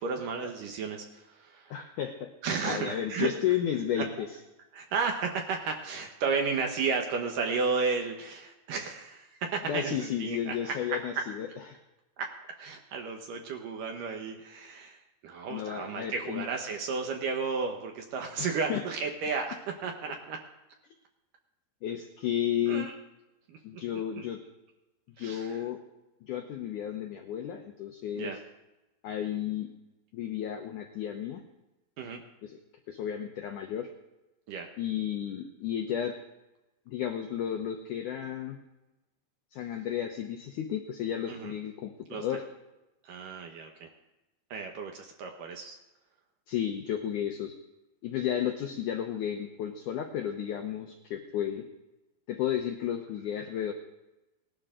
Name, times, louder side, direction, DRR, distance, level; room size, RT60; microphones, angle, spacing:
voice 1, 0.0-1.8 2.4-3.3 4.0-4.1 4.7-11.0 12.2-12.3 12.6-15.0 15.2-19.5 19.8-20.4 22.7-22.9 23.5-23.8 24.1-24.3 25.2-25.6 28.2-28.4 32.0-32.2 34.5-34.7 41.3-41.5 42.1-42.2 43.0-43.9 44.5-45.8, right 5 dB, 70° right, 3 dB, 2.2 m, -33 dB
voice 2, 1.7-2.3 2.6-4.3 9.6-11.8 15.5-16.5 18.4-18.8 21.8-22.9 23.6-24.4 25.2-25.8 26.2-28.4 29.0-29.7 30.1-31.4 32.4-32.6 32.9-33.9 34.8-36.2 36.9-38.6 39.5-42.4 46.5-47.6 48.0-51.6 52.3-53.7, left 10 dB, 80° left, 4 dB, 1.8 m, -33 dB
19.0 x 12.0 x 3.7 m, 1.0 s
omnidirectional pair, 4.8 m